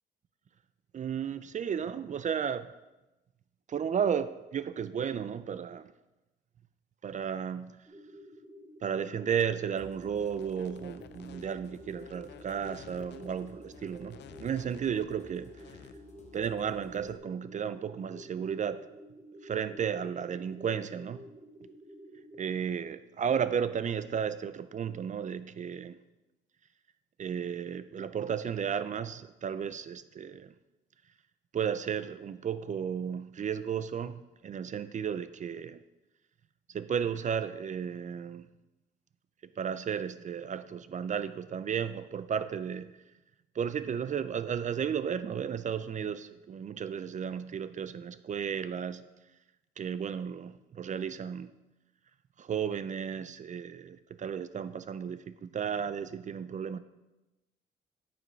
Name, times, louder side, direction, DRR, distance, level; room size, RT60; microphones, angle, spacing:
voice 1, 0.9-2.7 3.7-5.9 7.0-7.9 8.8-15.8 16.3-18.9 19.4-21.2 22.4-26.0 27.2-30.5 31.5-35.8 36.7-38.5 39.6-42.9 43.5-49.1 49.8-51.5 52.4-56.8, right 7 dB, 40° right, 13 dB, 0.4 m, -34 dB
sound 1, 7.9-22.4, equal, 15° right, 1.1 m, -51 dB
sound 2, 9.8-17.2, left 4 dB, 35° left, 1.1 m, -56 dB
sound 3, 10.1-15.9, left 10 dB, 60° left, 0.5 m, -53 dB
7.6 x 4.8 x 5.3 m, 1.0 s
cardioid pair, 90°, 20 cm